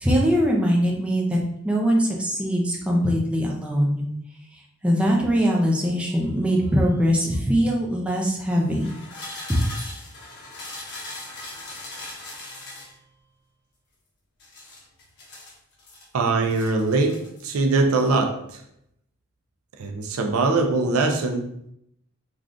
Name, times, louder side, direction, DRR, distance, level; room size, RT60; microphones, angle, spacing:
voice 1, 0.0-4.0 4.5-8.9 9.5-9.7, equal, 5° right, -2 dB, 0.4 m, -22 dB
sound 1, 5.8-7.7 8.5-13.0 14.4-16.0 16.4-17.5 17.8-18.1, left 2 dB, 55° left, 0.8 m, -40 dB
voice 2, 16.1-18.6 19.8-21.5, right 3 dB, 85° right, 5 dB, 0.4 m, -22 dB
3.4 x 2.4 x 2.5 m, 0.75 s
head